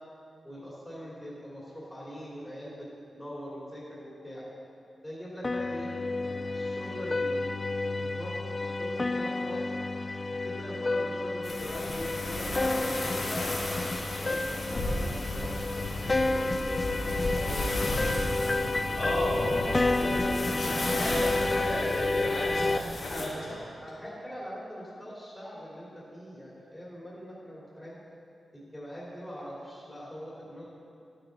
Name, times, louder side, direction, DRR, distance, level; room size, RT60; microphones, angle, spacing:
voice 1, 0.4-2.9 3.1-4.4 5.0-5.9 6.2-7.5 8.0-9.6 10.4-12.7 13.1-13.7 14.0-16.3 17.0-18.5 19.8-20.3 20.9-21.2 23.1-23.3 23.8-27.9 28.5-30.6, equal, 5° left, -7 dB, 2.7 m, -42 dB
sound 1, 5.4-22.8, left 2 dB, 25° left, 0.3 m, -30 dB
sound 2, 11.4-23.3, left 1 dB, 45° left, 1.9 m, -34 dB
voice 2, 18.9-23.7, left 1 dB, 70° left, -8 dB, 2.9 m, -34 dB
11.5 x 11.0 x 3.9 m, 2.5 s
wide cardioid pair, 115°, 0 cm